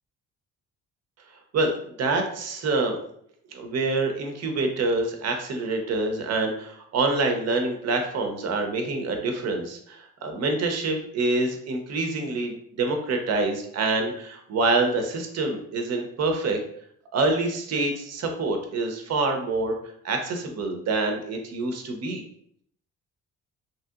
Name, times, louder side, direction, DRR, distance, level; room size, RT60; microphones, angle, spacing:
voice 1, 1.5-3.0 3.5-16.6 17.1-19.8 20.0-22.2, right 3 dB, 60° right, 4 dB, 0.7 m, -26 dB
2.9 x 2.7 x 2.4 m, 0.67 s
cardioid pair, 90°, 30 cm